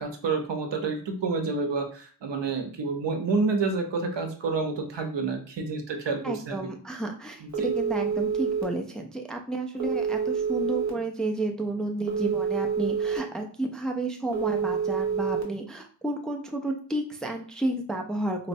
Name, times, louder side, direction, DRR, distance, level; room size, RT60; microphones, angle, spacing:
voice 1, 0.0-6.7 7.4-7.7, right 4 dB, 80° right, 5 dB, 0.7 m, -29 dB
voice 2, 6.2-18.5, right 2 dB, ahead, 3 dB, 0.3 m, -31 dB
Telephone, 7.5-8.6 9.8-10.9 12.1-13.2 14.3-15.4, right 6 dB, 40° right, 0.8 m, -27 dB
4.0 x 2.0 x 2.6 m, 0.42 s
wide cardioid pair, 95°, 42 cm